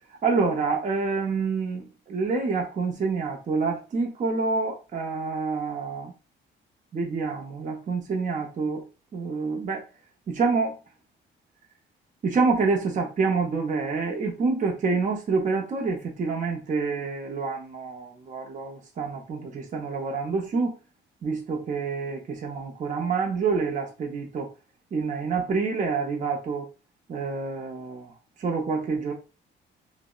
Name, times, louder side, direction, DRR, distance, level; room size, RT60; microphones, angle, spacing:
voice 1, 0.2-6.1 6.9-8.8 9.1-9.8 10.3-10.8 12.2-20.8 21.2-24.5 24.9-26.7 27.1-28.1 28.4-29.1, right 4 dB, 40° right, 0.5 m, -27 dB
2.8 x 2.0 x 2.2 m
cardioid pair, 90°, 20 cm